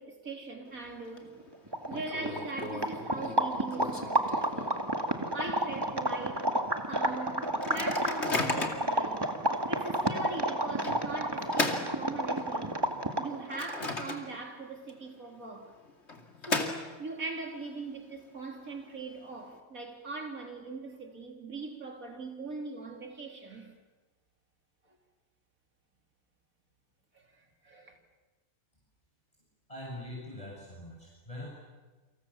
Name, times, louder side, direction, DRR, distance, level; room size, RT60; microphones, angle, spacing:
voice 1, 0.0-1.3 1.9-4.8 5.3-6.4 6.9-9.3 9.7-12.7 13.2-15.7 16.4-23.7 27.1-28.0, right 3 dB, 90° right, 4.1 m, -41 dB
Microwave oven, 0.7-1.2 1.5-1.6 1.9-5.0 5.4-5.5 5.8-6.1 6.6-6.7 7.4-9.0 9.6-9.7 10.8-12.7 13.1-14.6 14.9-15.0 15.9-17.3, left 3 dB, 55° left, 2.9 m, -36 dB
sound 1, 1.4-1.5 1.7-13.4, right 1 dB, 15° right, 2.2 m, -31 dB
voice 2, 29.7-31.5, left 1 dB, 25° left, 7.4 m, -43 dB
29.5 x 26.0 x 7.3 m
omnidirectional pair, 1.4 m